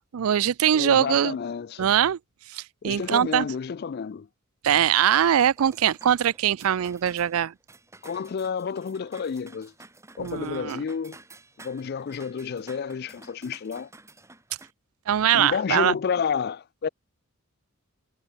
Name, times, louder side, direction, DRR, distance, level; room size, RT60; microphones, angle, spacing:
voice 1, 0.1-1.3 1.8-2.2 2.5-3.5 4.6-7.5 10.2-10.8 15.1-15.9, right 9 dB, 85° right, 0.4 m, -22 dB
voice 2, 0.7-1.9 2.8-4.3 8.0-9.7 10.2-11.2 11.6-13.9 15.3-16.9, left 6 dB, 50° left, 0.4 m, -30 dB
sound 1, 4.7-14.7, right 2 dB, 15° right, 2.3 m, -51 dB
head